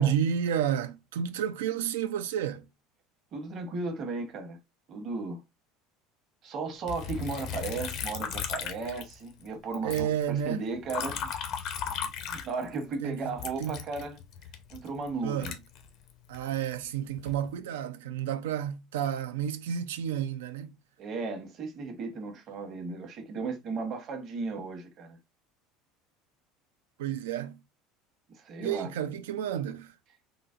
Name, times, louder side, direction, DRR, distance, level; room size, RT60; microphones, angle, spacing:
voice 1, 0.0-2.7 9.8-10.6 13.0-13.7 15.2-15.6 16.3-20.7 27.0-27.6 28.6-29.9, right 9 dB, 90° right, 0.4 m, -31 dB
voice 2, 3.3-4.6 4.9-5.4 6.4-11.4 12.2-14.2 14.7-15.5 21.0-25.2 28.3-28.9, right 4 dB, 50° right, 0.9 m, -35 dB
Liquid, 6.9-9.5 9.7-12.9 13.4-16.4 17.0-17.5, left 7 dB, 60° left, 0.6 m, -36 dB
3.9 x 2.0 x 2.4 m
supercardioid pair, 100°, 0 cm